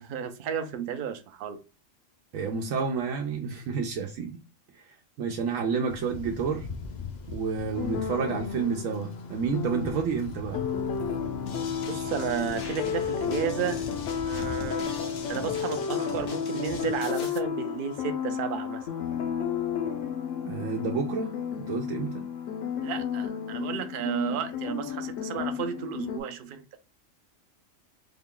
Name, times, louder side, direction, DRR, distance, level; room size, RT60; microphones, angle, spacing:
voice 1, 0.0-1.6 11.9-13.9 14.2-14.8 15.3-18.9 22.8-26.8, right 8 dB, 55° right, 0.6 m, -33 dB
voice 2, 2.3-4.4 4.7-4.8 5.2-6.7 7.3-10.6 20.4-21.3 21.6-22.2, right 5 dB, 80° right, 1.0 m, -30 dB
Thunder, 5.9-15.8, left 5 dB, 55° left, 0.5 m, -42 dB
sound 1, 7.7-26.2, left 7 dB, 70° left, 0.9 m, -32 dB
sound 2, 11.5-17.4, left 6 dB, 90° left, 1.1 m, -42 dB
3.5 x 2.3 x 3.6 m
omnidirectional pair, 1.4 m